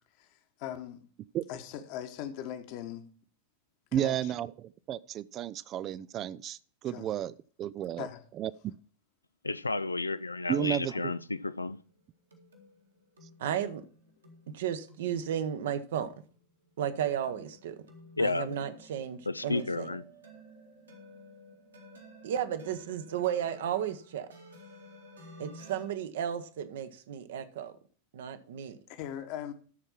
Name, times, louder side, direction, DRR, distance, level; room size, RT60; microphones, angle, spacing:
voice 1, 0.2-1.0 1.5-3.1 3.9-4.3 6.8-7.1 8.0-8.2 10.9-11.0 28.9-29.5, left 10 dB, 45° left, 1.2 m, -40 dB
voice 2, 3.9-8.1 8.4-8.7 10.5-11.1, right 11 dB, 30° right, 0.3 m, -33 dB
voice 3, 9.4-11.8 18.2-18.6 19.3-20.0, left 3 dB, 80° left, 0.4 m, -32 dB
sound 1, 11.7-25.8, equal, 75° right, 2.3 m, -54 dB
voice 4, 13.4-13.8 14.5-16.1 16.8-17.8 18.2-20.0 22.2-24.3 25.4-27.7 28.1-28.8, right 9 dB, 60° right, 0.9 m, -33 dB
13.5 x 4.5 x 5.9 m
figure-of-eight pair, 90°, 0 cm